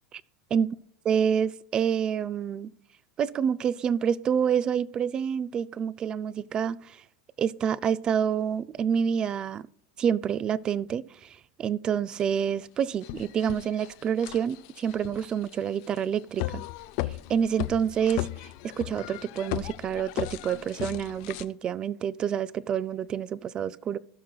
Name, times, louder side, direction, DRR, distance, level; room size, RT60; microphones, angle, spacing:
voice 1, 1.1-2.7 3.2-7.0 7.4-9.7 10.0-16.6 17.3-18.3 18.6-24.0, right 8 dB, 30° right, 0.4 m, -28 dB
sound 1, 12.2-12.3 12.8-21.4, left 17 dB, 60° left, 0.5 m, -36 dB
17.0 x 5.9 x 2.3 m
supercardioid pair, 115°, 3 cm